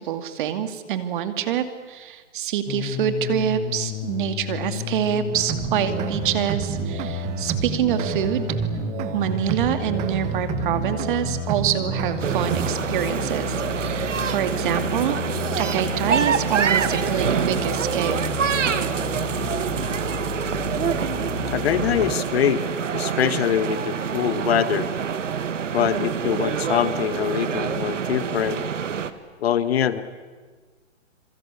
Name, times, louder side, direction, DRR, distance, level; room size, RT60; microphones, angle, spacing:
voice 1, 0.0-8.5 9.1-15.2 15.6-18.2, right 10 dB, 40° right, 10 dB, 2.5 m, -26 dB
sound 1, 2.7-22.1, left 12 dB, 20° left, 1.1 m, -33 dB
sound 2, 5.3-12.7, right 12 dB, 20° right, 1.2 m, -29 dB
sound 3, 12.2-29.1, right 7 dB, 80° right, 1.9 m, -26 dB
voice 2, 21.5-22.6 22.9-24.9 25.7-28.6 29.4-30.0, left 9 dB, 55° left, 13 dB, 1.8 m, -23 dB
27.0 x 23.5 x 8.4 m, 1.4 s
hypercardioid pair, 150°, 37 cm